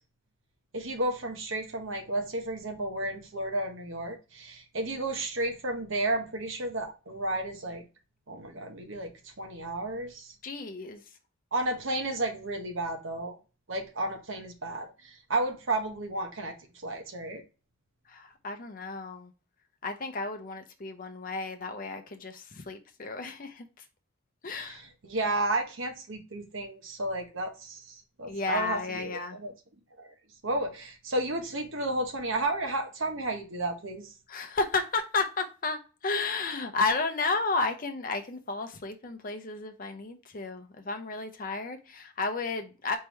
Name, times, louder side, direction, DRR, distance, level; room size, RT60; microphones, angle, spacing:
voice 1, 0.7-7.8 8.3-9.1 9.4-10.3 11.5-13.3 13.7-16.5 16.8-17.4 24.5-29.5 30.0-30.1 30.4-34.1, right 2 dB, 60° right, 1.0 m, -32 dB
voice 2, 10.4-11.0 18.1-19.3 19.8-23.7 24.4-24.8 28.3-29.4 34.3-43.0, left 3 dB, 40° left, 0.6 m, -32 dB
4.5 x 3.6 x 3.1 m
head